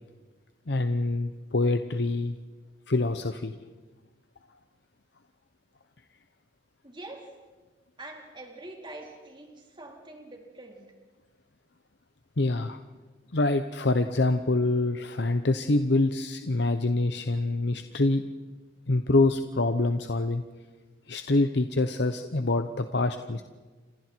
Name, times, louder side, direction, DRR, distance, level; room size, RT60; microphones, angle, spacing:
voice 1, 0.7-2.4 2.9-3.6 12.4-12.8 13.3-18.2 18.9-20.4 21.1-23.4, left 2 dB, 70° left, 8 dB, 1.0 m, -25 dB
voice 2, 6.8-7.3 8.0-10.9, right 2 dB, 25° right, 0 dB, 4.3 m, -44 dB
29.5 x 26.5 x 4.6 m, 1.3 s
head